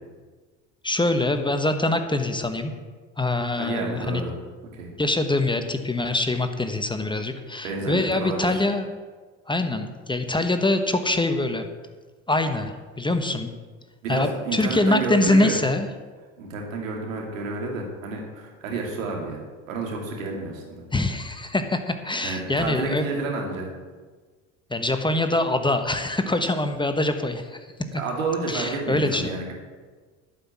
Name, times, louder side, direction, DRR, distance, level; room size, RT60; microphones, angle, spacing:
voice 1, 0.8-2.7 3.2-4.2 5.0-8.9 9.5-11.7 12.3-13.5 14.1-15.9 20.9-23.0 24.7-27.6 28.5-29.3, left 2 dB, 10° left, 7 dB, 1.1 m, -24 dB
voice 2, 3.6-4.4 4.7-4.9 7.6-8.6 14.0-15.6 16.4-19.4 19.7-20.8 22.2-23.7 27.9-29.5, right 3 dB, 90° right, 0 dB, 2.5 m, -30 dB
11.5 x 5.9 x 8.5 m, 1.4 s
hypercardioid pair, 75°, 38 cm